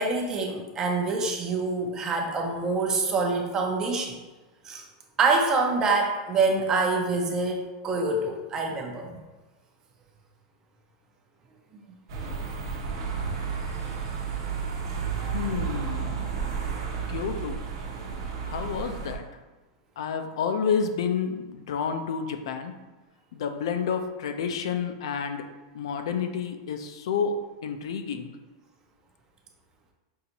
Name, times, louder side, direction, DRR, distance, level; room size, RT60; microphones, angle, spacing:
voice 1, 0.0-4.2 4.6-4.8 5.2-9.2 11.7-11.8, right 3 dB, 25° right, 2 dB, 0.6 m, -26 dB
sound 1, 12.1-19.1, right 6 dB, 70° right, 0.9 m, -32 dB
voice 2, 15.3-16.3 17.1-17.6 18.5-19.2 20.0-22.7 23.3-25.5 25.7-27.3 27.6-28.3, left 6 dB, 80° left, 7 dB, 0.4 m, -29 dB
5.5 x 2.6 x 2.9 m, 1.2 s
supercardioid pair, 150°, 3 cm